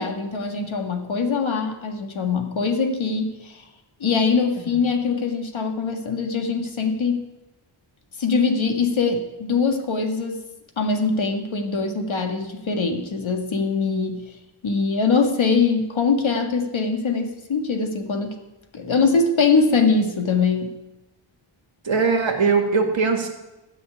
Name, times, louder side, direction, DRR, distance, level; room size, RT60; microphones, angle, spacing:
voice 1, 0.0-3.6 4.0-7.3 8.2-10.4 10.8-14.2 14.6-18.4 18.7-20.7, left 4 dB, 70° left, 4 dB, 1.9 m, -22 dB
voice 2, 21.9-23.3, right 4 dB, 65° right, 4 dB, 2.1 m, -20 dB
13.5 x 6.1 x 9.6 m, 1.0 s
wide cardioid pair, 135°, 48 cm